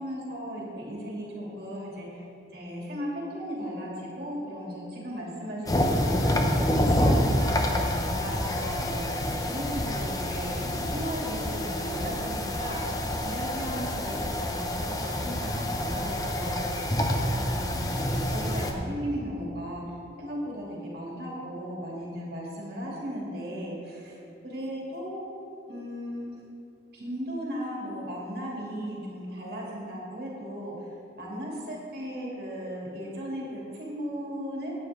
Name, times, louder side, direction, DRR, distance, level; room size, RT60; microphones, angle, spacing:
voice 1, 0.0-2.2 2.5-19.8 20.2-25.2 25.7-26.3 26.9-34.7, equal, 55° right, -4 dB, 2.6 m, -36 dB
sound 1, 5.7-18.7, left 1 dB, 20° left, 0.7 m, -28 dB
11.5 x 9.0 x 3.7 m, 2.5 s
head